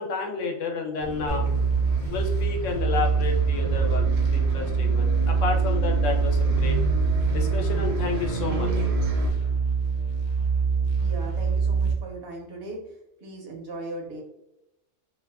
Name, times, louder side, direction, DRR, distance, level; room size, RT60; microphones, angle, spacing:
voice 1, 0.0-1.5 2.1-6.8 7.3-8.7, left 5 dB, 80° left, 1 dB, 0.9 m, -30 dB
Bus, 1.0-9.3, equal, 90° right, 1.0 m, -32 dB
sound 1, 1.3-11.9, right 5 dB, 60° left, 0.5 m, -24 dB
voice 2, 11.0-12.8 13.2-14.2, right 2 dB, 65° right, 0 dB, 0.7 m, -38 dB
2.5 x 2.2 x 2.2 m, 0.88 s
omnidirectional pair, 1.3 m